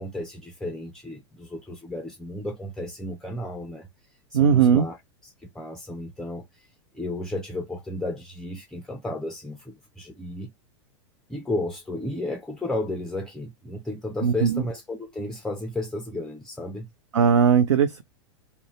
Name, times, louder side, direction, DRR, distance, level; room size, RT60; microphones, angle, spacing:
voice 1, 0.0-3.9 4.3-5.0 5.2-6.7 6.9-10.5 11.3-16.9, left 1 dB, 5° left, 0.4 m, -33 dB
voice 2, 4.3-4.8 14.2-14.6 17.1-18.0, right 7 dB, 75° right, 0.4 m, -19 dB
2.5 x 2.1 x 2.9 m
figure-of-eight pair, 95°, 15 cm